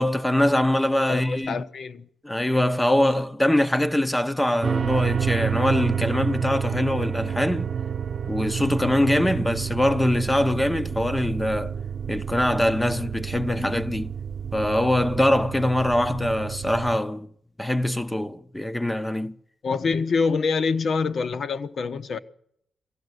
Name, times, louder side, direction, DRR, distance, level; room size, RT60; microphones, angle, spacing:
voice 1, 0.0-1.6 2.2-7.7 8.3-11.7 12.1-14.1 14.5-17.3 17.6-19.4, left 1 dB, 5° left, 0.8 m, -23 dB
voice 2, 1.1-2.1 19.6-22.2, left 5 dB, 50° left, 1.0 m, -25 dB
sound 1, 4.6-16.9, right 7 dB, 40° right, 1.1 m, -29 dB
21.5 x 16.0 x 8.0 m
wide cardioid pair, 140°, 0 cm